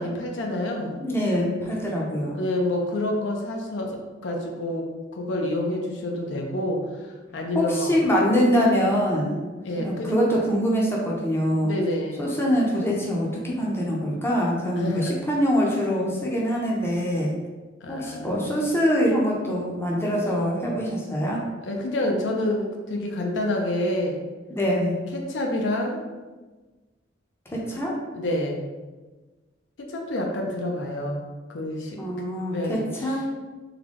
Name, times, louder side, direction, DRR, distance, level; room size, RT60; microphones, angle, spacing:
voice 1, 0.0-1.0 2.3-7.9 9.6-10.1 11.6-12.3 14.8-15.1 17.8-18.5 21.6-24.2 25.1-26.0 28.1-28.6 29.8-31.2 31.5-32.0 32.5-32.9, left 1 dB, 70° left, 1 dB, 0.5 m, -28 dB
voice 2, 1.0-2.4 7.5-9.5 9.8-11.7 12.2-17.3 17.9-21.4 24.5-24.9 27.5-27.9 32.0-33.2, equal, 15° left, -3 dB, 0.6 m, -24 dB
3.7 x 2.2 x 3.4 m, 1.3 s
head